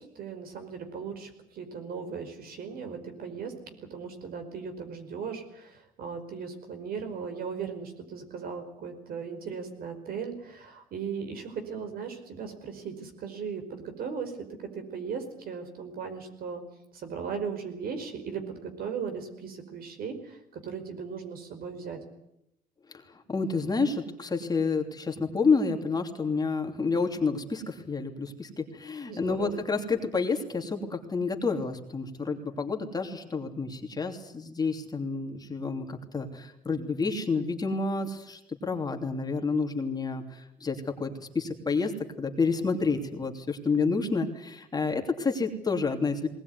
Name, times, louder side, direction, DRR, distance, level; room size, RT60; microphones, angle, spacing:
voice 1, 0.0-16.6 16.9-22.0 29.1-29.6, right 6 dB, 60° right, 7 dB, 5.1 m, -37 dB
voice 2, 22.9-41.9 42.2-46.3, left 4 dB, 25° left, 3 dB, 3.1 m, -29 dB
20.0 x 19.5 x 9.6 m, 0.80 s
cardioid pair, 110°, 17 cm